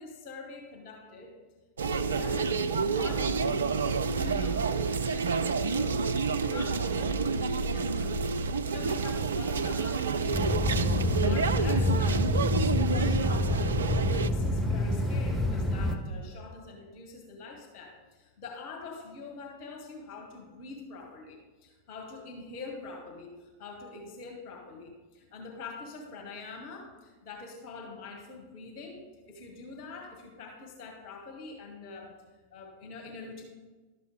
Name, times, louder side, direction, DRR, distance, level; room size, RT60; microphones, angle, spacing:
voice 1, 0.0-1.3 2.0-2.5 2.8-6.0 6.4-8.2 8.5-10.6 11.0-13.7 14.1-29.0 29.3-32.1 32.5-33.4, left 3 dB, 45° left, 2 dB, 1.8 m, -44 dB
sound 1, 1.8-14.3, right 5 dB, 70° right, 0.5 m, -29 dB
sound 2, 10.3-16.0, left 1 dB, ahead, 1.1 m, -27 dB
12.0 x 7.5 x 5.1 m, 1.3 s
figure-of-eight pair, 90°, 0 cm